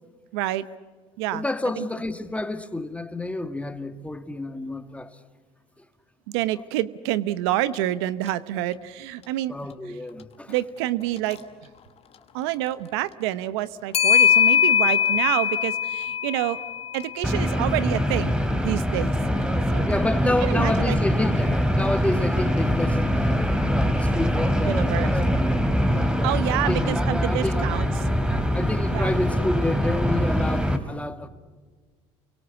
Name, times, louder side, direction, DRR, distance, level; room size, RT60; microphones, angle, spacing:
voice 1, 0.3-0.6 1.2-1.4 1.8-1.9 6.3-9.5 10.5-11.4 12.3-16.6 16.9-18.4 18.6-19.1 19.7-19.9 20.4-21.0 24.7-25.1 26.0-27.9 28.9-29.1, right 14 dB, 85° right, 0.9 m, -27 dB
voice 2, 1.3-5.2 5.8-5.9 9.5-10.6 19.8-23.6 23.9-25.7 26.1-27.6 28.5-31.3, left 2 dB, 10° left, 2.0 m, -29 dB
Clock, 7.7-7.8 8.3-8.4 11.2-11.4 13.9-18.2, left 8 dB, 50° left, 2.3 m, -22 dB
sound 1, 17.2-30.8, equal, 5° right, 2.7 m, -23 dB
29.0 x 24.0 x 8.2 m
supercardioid pair, 75°, 13 cm